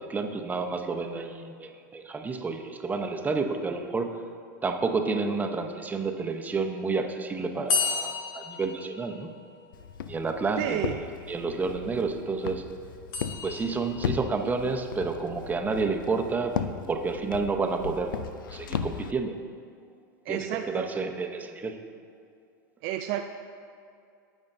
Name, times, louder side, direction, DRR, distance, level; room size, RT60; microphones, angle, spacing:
voice 1, 0.0-4.2 4.6-9.3 10.1-10.8 11.3-12.7 13.4-16.6 16.9-18.2 18.5-19.4 20.3-21.8, right 4 dB, 15° right, 4 dB, 0.8 m, -30 dB
sound 1, 7.7-9.7 13.1-14.2, left 5 dB, 65° left, 1.5 m, -32 dB
Walk footsteps, 9.7-19.1, left 7 dB, 80° left, 0.4 m, -36 dB
voice 2, 10.6-11.0 20.3-20.9 22.8-23.2, right 12 dB, 50° right, 6 dB, 0.4 m, -30 dB
15.5 x 5.3 x 2.7 m, 2.3 s
hypercardioid pair, 100°, 11 cm